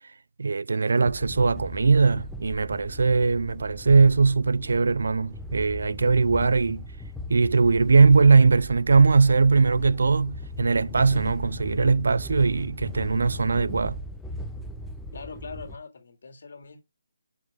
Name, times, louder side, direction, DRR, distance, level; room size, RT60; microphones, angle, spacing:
voice 1, 0.4-6.8 7.3-14.0, right 4 dB, 70° right, 0.4 m, -20 dB
sound 1, 1.0-15.8, left 1 dB, 5° left, 0.6 m, -38 dB
voice 2, 15.1-16.8, left 4 dB, 60° left, 2.2 m, -41 dB
9.3 x 5.1 x 3.5 m
hypercardioid pair, 165°, 0 cm